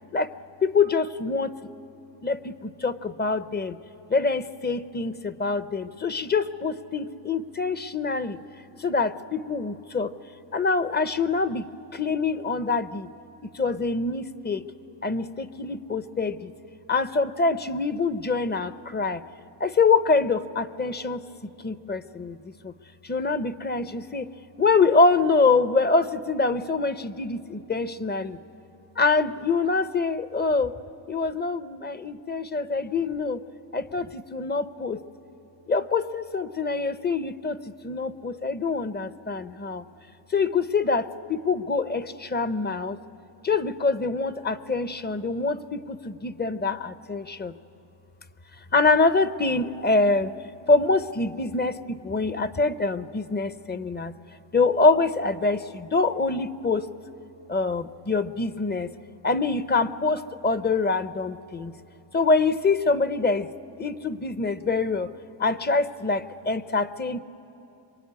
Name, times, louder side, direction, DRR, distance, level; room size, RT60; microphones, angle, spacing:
voice 1, 0.6-1.5 2.2-3.8 4.1-8.4 8.8-10.1 10.5-13.1 13.5-14.6 15.0-16.5 16.9-19.2 19.6-21.2 21.6-22.7 23.0-24.3 24.6-28.4 29.0-30.8 31.1-33.4 33.7-35.0 35.7-39.8 40.3-43.0 43.4-47.5 48.7-50.3 50.7-54.1 54.5-56.9 57.5-58.9 59.2-61.7 62.1-63.5 63.8-65.1 65.4-67.2, left 3 dB, 20° left, 13 dB, 0.7 m, -25 dB
26.5 x 23.5 x 9.6 m, 2.7 s
cardioid pair, 125°, 45 cm